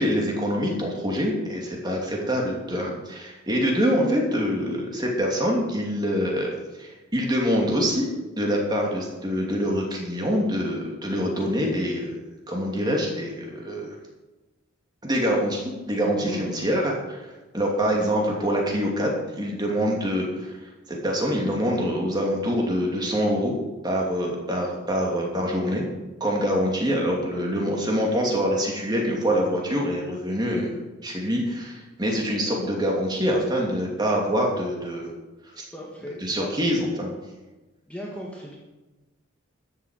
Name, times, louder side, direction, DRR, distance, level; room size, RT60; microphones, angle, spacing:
voice 1, 0.0-8.1 8.4-12.2 12.5-13.9 15.0-17.2 17.5-20.6 20.9-23.5 23.8-25.9 26.2-35.1 35.6-35.7 36.2-37.1, equal, 20° right, -1 dB, 2.8 m, -25 dB
voice 2, 16.2-16.5 35.7-36.7 37.9-38.6, left 1 dB, 5° left, -3 dB, 1.8 m, -37 dB
13.0 x 7.6 x 7.8 m, 1.1 s
head